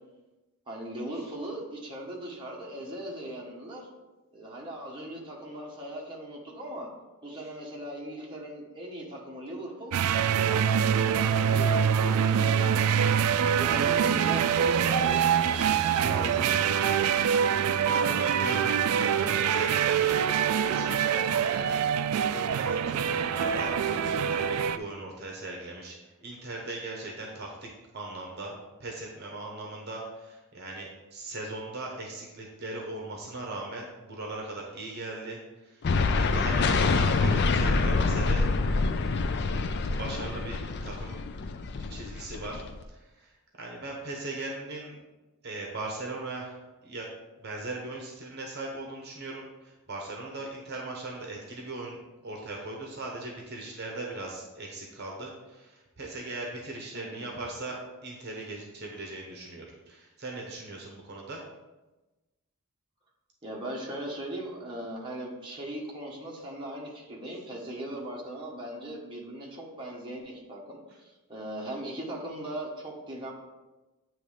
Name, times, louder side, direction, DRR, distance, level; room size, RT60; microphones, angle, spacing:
voice 1, 0.7-3.9 4.3-6.9 7.2-10.0 10.3-12.9 13.6-16.4 39.9-40.3 56.9-57.3 63.4-73.3, right 1 dB, 20° right, -3 dB, 1.2 m, -39 dB
sound 1, 9.9-24.8, right 8 dB, 90° right, 0.3 m, -25 dB
voice 2, 17.6-20.3 20.5-21.9 22.3-38.5 39.3-39.6 39.9-41.2 41.9-45.0 45.4-47.1 47.4-61.4 67.2-67.4, right 2 dB, 45° right, -1 dB, 1.0 m, -39 dB
sound 2, 35.8-42.8, left 3 dB, 50° left, 0.4 m, -26 dB
8.9 x 3.2 x 5.0 m, 1.1 s
head